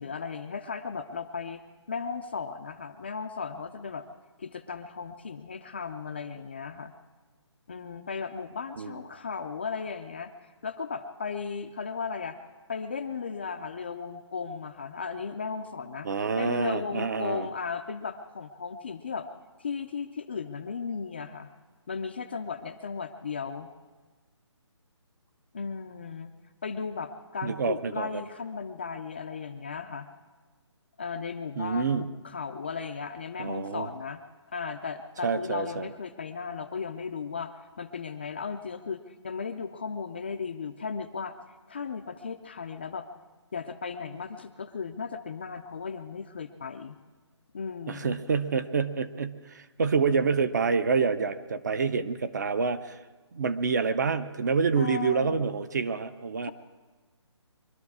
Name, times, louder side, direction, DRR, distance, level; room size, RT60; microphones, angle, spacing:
voice 1, 0.0-1.6 1.9-4.1 4.4-6.9 7.7-10.3 10.6-12.4 12.7-19.3 19.6-21.5 21.9-23.7 25.5-26.3 26.6-30.1 31.0-34.2 34.5-41.3 41.7-43.1 43.5-47.0 47.5-48.2 50.2-50.3 54.8-55.5 56.4-56.5, left 5 dB, 20° left, 6 dB, 0.4 m, -36 dB
voice 2, 16.0-17.5 27.4-28.2 31.6-32.1 33.4-33.9 35.2-35.9 47.9-53.0 53.3-56.5, right 5 dB, 35° right, 12 dB, 0.6 m, -27 dB
23.5 x 12.5 x 4.8 m, 1.3 s
hypercardioid pair, 165°, 15 cm